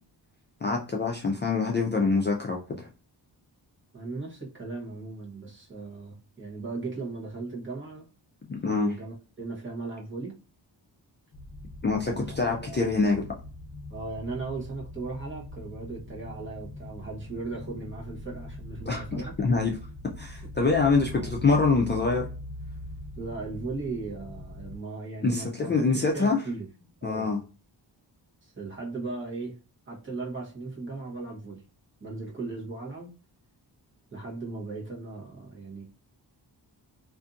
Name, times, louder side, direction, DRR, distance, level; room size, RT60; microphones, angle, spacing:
voice 1, 0.6-2.9 8.4-9.0 11.8-13.3 18.9-19.8 20.2-22.3 25.2-26.4 27.0-27.4, left 4 dB, 25° left, 0 dB, 0.4 m, -25 dB
voice 2, 3.9-8.1 8.7-10.3 12.0-12.9 13.9-19.3 21.1-21.4 23.2-26.7 27.0-27.3 28.4-29.6 29.9-31.6 32.0-33.1 34.1-35.8, right 3 dB, 30° right, -3 dB, 1.0 m, -37 dB
sound 1, 11.3-24.8, left 1 dB, 50° left, 1.0 m, -42 dB
2.6 x 2.6 x 2.4 m, 0.36 s
wide cardioid pair, 115°, 43 cm